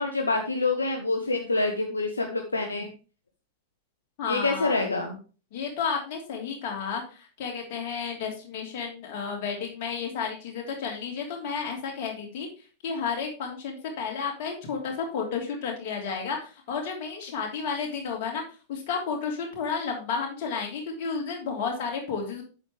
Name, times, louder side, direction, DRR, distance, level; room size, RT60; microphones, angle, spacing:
voice 1, 0.0-2.9 4.3-5.2, left 3 dB, 80° left, 4 dB, 0.9 m, -26 dB
voice 2, 4.2-4.9 5.5-12.5 12.8-18.4 18.7-22.4, left 5 dB, 50° left, 0 dB, 3.1 m, -32 dB
8.3 x 6.9 x 3.3 m, 0.35 s
figure-of-eight pair, 90°, 0 cm